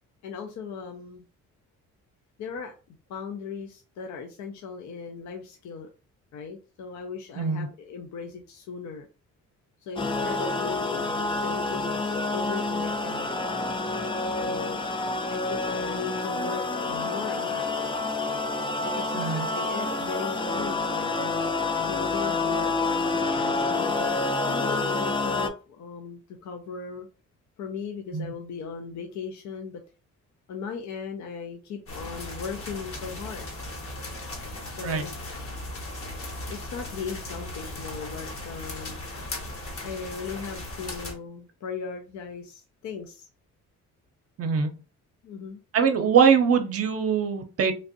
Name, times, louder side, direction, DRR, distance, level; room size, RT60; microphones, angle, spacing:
voice 1, 0.2-1.2 2.4-5.9 6.3-9.1 9.8-13.3 14.3-14.8 15.3-16.6 16.9-17.7 18.8-24.1 24.5-27.1 27.6-29.8 30.5-33.5 34.7-35.2 36.5-39.0 39.8-43.3 45.2-45.6, left 6 dB, 70° left, 0.6 m, -38 dB
voice 2, 7.3-7.7 19.1-19.5 28.1-28.3 34.8-35.0 44.4-44.8 45.7-47.7, right 6 dB, 50° right, 0.6 m, -22 dB
sound 1, 10.0-25.5, left 3 dB, 15° left, 0.4 m, -28 dB
sound 2, 31.9-41.1, left 1 dB, 50° left, 1.0 m, -37 dB
3.2 x 2.5 x 2.6 m
cardioid pair, 90°, 30 cm